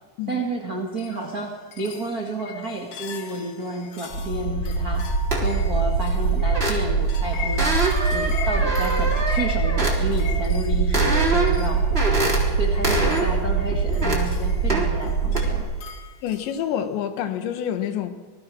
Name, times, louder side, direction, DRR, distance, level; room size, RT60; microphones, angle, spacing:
voice 1, 0.3-5.1 5.4-12.0 12.6-15.7, right 2 dB, 90° right, 0.8 m, -30 dB
sound 1, 1.0-16.6, left 5 dB, 55° left, 3.1 m, -39 dB
sound 2, 4.1-15.6, right 4 dB, 20° left, 4.5 m, -23 dB
sound 3, 5.3-5.6 6.5-7.1 7.6-10.0 10.9-11.6 11.9-12.4 12.8-13.3 13.7-14.2 14.7-14.9 15.3-15.5, right 2 dB, 15° right, 3.4 m, -25 dB
voice 2, 16.2-18.2, left 9 dB, 75° left, 3.6 m, -27 dB
26.5 x 19.5 x 6.3 m
omnidirectional pair, 5.2 m